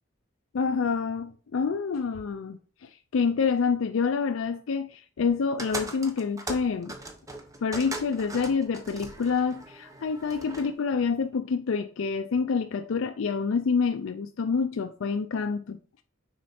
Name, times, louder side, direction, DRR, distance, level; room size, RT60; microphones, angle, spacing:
voice 1, 0.5-7.0 7.6-15.8, left 5 dB, 85° left, 0.4 m, -27 dB
sound 1, 5.6-10.7, right 2 dB, 15° right, 0.8 m, -39 dB
6.3 x 3.9 x 4.3 m
head